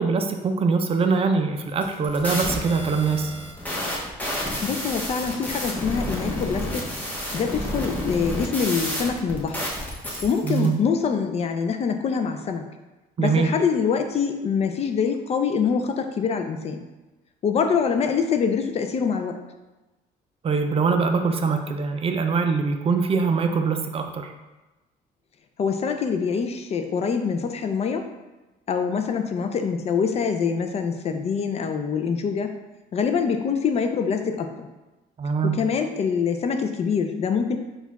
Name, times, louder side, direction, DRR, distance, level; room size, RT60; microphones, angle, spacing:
voice 1, 0.0-3.3 10.4-10.7 13.2-13.5 20.4-24.3 35.2-35.5, right 4 dB, 35° right, 5 dB, 0.4 m, -23 dB
sound 1, 1.7-10.7, equal, 10° left, 0.9 m, -30 dB
voice 2, 4.6-6.9 7.3-9.6 10.2-12.6 13.2-16.8 17.4-19.4 25.6-28.1 28.7-32.5 32.9-34.7 35.4-37.6, left 6 dB, 40° left, 6 dB, 0.4 m, -25 dB
4.1 x 2.3 x 4.0 m, 1.1 s
cardioid pair, 110°, 17 cm